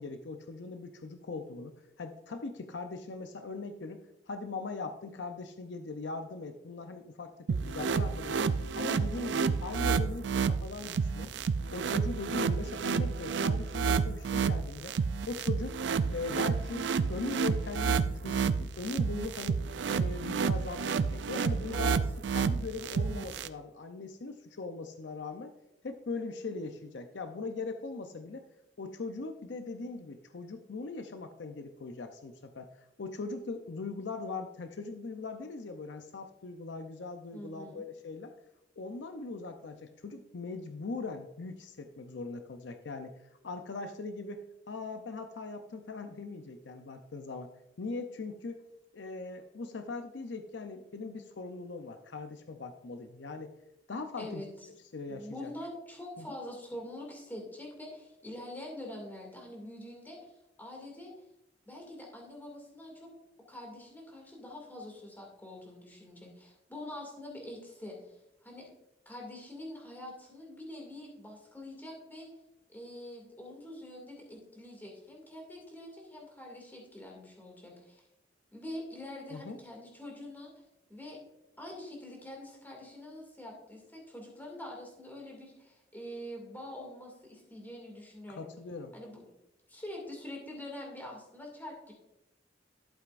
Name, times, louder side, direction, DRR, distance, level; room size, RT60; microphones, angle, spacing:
voice 1, 0.0-8.4 8.7-11.3 11.7-14.9 15.3-15.8 16.1-19.6 19.9-22.0 22.3-25.5 25.8-28.4 28.8-32.7 33.0-38.3 38.8-43.2 43.4-47.5 47.8-48.6 48.9-53.5 53.9-54.4 54.9-55.5 56.2-56.3 79.3-79.6 88.3-88.9, left 3 dB, 70° left, 7 dB, 0.6 m, -40 dB
sound 1, 7.5-23.5, right 5 dB, 70° right, 0.4 m, -30 dB
voice 2, 37.3-37.8 54.2-54.5 55.1-60.3 60.6-61.1 61.6-63.1 63.5-68.6 69.1-72.3 72.7-78.0 78.5-80.5 80.9-81.2 81.6-88.5 88.9-89.3 89.7-91.9, left 1 dB, 10° left, 0 dB, 2.3 m, -45 dB
11.5 x 8.0 x 2.5 m, 0.87 s
head